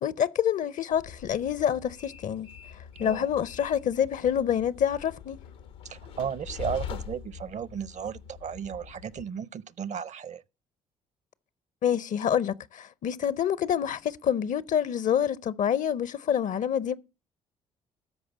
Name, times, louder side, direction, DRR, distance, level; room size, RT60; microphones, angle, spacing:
voice 1, 0.0-5.4 11.8-17.0, left 9 dB, 55° left, 0.6 m, -27 dB
Train, 0.9-9.2, left 8 dB, 90° left, 1.0 m, -43 dB
voice 2, 5.8-10.4, right 7 dB, 50° right, 0.6 m, -35 dB
13.5 x 4.9 x 7.2 m
hypercardioid pair, 50°, 16 cm